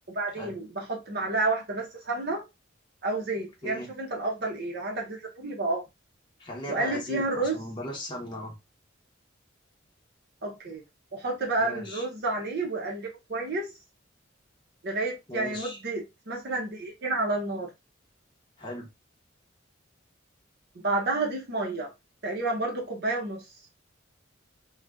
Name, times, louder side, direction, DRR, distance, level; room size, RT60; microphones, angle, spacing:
voice 1, 0.1-2.4 3.0-5.8 6.7-7.6 10.4-10.8 11.1-13.7 14.8-17.7 20.8-21.9 22.2-23.4, right 2 dB, 55° right, 0.8 m, -30 dB
voice 2, 6.4-8.6 11.6-12.0 15.3-15.8 18.6-18.9, left 1 dB, 25° left, 0.7 m, -37 dB
2.6 x 2.4 x 3.4 m
head